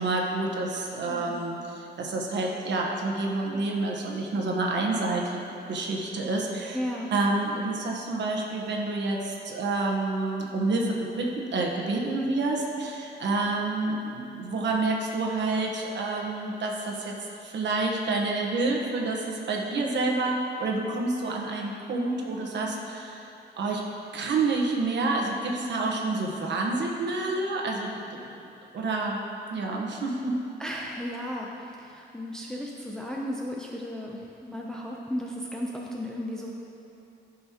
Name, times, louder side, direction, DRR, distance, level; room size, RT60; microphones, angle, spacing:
voice 1, 0.0-6.8 7.1-17.1 17.4-23.2 23.6-23.8 24.1-28.2 28.7-29.2 29.5-30.4, right 3 dB, 75° right, 0 dB, 1.2 m, -28 dB
voice 2, 1.1-1.5 6.7-7.1 11.9-12.2 25.5-25.9 30.6-36.5, equal, 5° left, -2 dB, 0.6 m, -35 dB
14.5 x 5.5 x 2.9 m, 2.8 s
cardioid pair, 115°, 19 cm